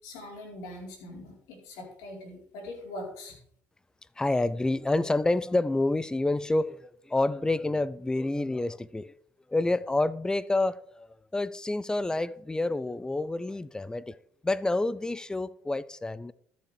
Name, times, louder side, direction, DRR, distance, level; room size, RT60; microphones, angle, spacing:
voice 1, 0.0-3.4, left 1 dB, 75° left, 4.3 m, -42 dB
voice 2, 4.2-9.2 9.5-14.2 14.4-16.3, left 2 dB, 10° left, 0.6 m, -28 dB
13.5 x 7.3 x 5.0 m
supercardioid pair, 75°, 6 cm